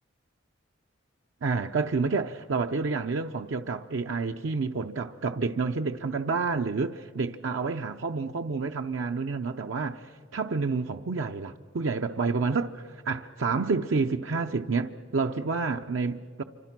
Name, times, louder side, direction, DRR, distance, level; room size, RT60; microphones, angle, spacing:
voice 1, 1.4-16.4, right 4 dB, 75° right, 0.6 m, -29 dB
28.5 x 25.5 x 5.9 m
head